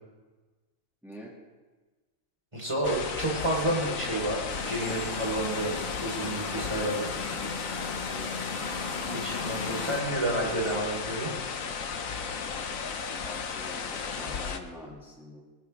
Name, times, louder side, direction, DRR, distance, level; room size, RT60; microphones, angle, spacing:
voice 1, 1.0-1.3 8.1-8.3 13.2-15.4, left 1 dB, ahead, -4 dB, 2.4 m, -45 dB
voice 2, 2.5-5.7 6.0-7.1 9.1-11.3, right 1 dB, 20° right, -3 dB, 4.4 m, -30 dB
sound 1, 2.8-14.6, left 6 dB, 75° left, 1.4 m, -35 dB
sound 2, 4.5-10.0, left 3 dB, 35° left, 1.8 m, -38 dB
19.5 x 19.5 x 3.6 m, 1.3 s
omnidirectional pair, 1.4 m